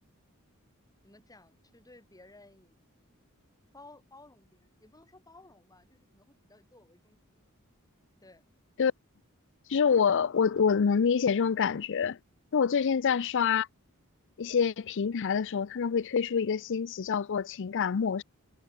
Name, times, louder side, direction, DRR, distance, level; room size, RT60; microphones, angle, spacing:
voice 1, 1.0-2.8 3.7-7.4 8.2-8.5, left 2 dB, 15° left, 6.6 m, -56 dB
voice 2, 9.7-12.2 12.5-13.7 14.4-18.2, left 6 dB, 60° left, 0.5 m, -26 dB
head